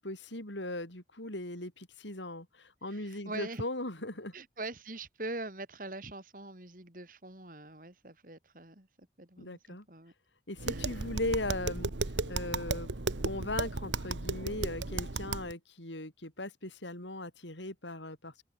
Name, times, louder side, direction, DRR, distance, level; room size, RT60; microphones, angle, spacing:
voice 1, 0.0-4.3 9.4-9.8 10.5-11.9 12.3-12.9 13.2-18.3, left 1 dB, 85° left, 7.5 m, -38 dB
voice 2, 2.9-3.6 4.3-10.1 10.7-11.1, right 2 dB, 50° right, 3.7 m, -43 dB
Tap, 10.6-15.5, right 3 dB, 90° right, 1.5 m, -35 dB
head